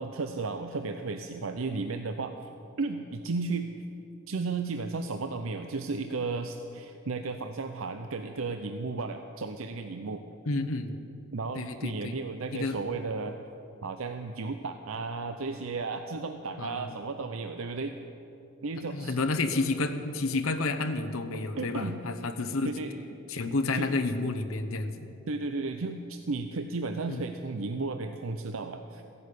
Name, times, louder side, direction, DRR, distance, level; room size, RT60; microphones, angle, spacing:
voice 1, 0.0-2.5 2.8-3.7 4.3-10.2 11.3-13.4 13.8-18.0 18.6-19.2 21.6-22.0 22.6-23.0 23.7-23.9 25.3-29.0, right 3 dB, 75° right, 7 dB, 0.7 m, -34 dB
voice 2, 10.5-10.9 11.5-12.1 12.5-12.8 16.6-16.9 18.9-22.7 23.3-25.1 27.1-27.3, left 3 dB, 85° left, 6 dB, 1.0 m, -30 dB
15.5 x 11.0 x 8.4 m, 2.8 s
head